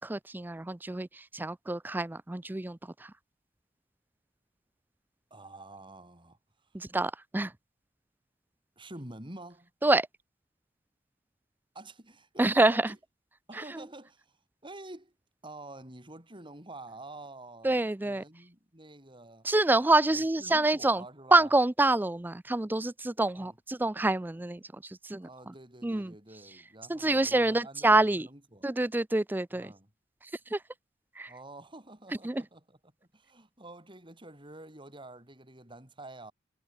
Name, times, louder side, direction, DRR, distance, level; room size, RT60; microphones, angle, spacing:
voice 1, 0.0-3.1 6.7-7.5 9.8-10.1 12.4-12.9 13.5-13.6 17.6-18.2 19.4-21.0 21.3-25.5 25.8-26.1 26.9-28.3 28.6-29.7 30.5-30.6 31.2-31.3 32.2-32.4, right 2 dB, 10° right, 0.4 m, -27 dB
voice 2, 5.3-6.8 8.8-9.7 11.7-13.0 13.5-15.1 15.4-19.5 20.2-21.5 23.4-23.6 25.2-28.7 29.5-29.9 31.3-32.8 33.1-36.3, right 2 dB, 25° right, 7.5 m, -48 dB
head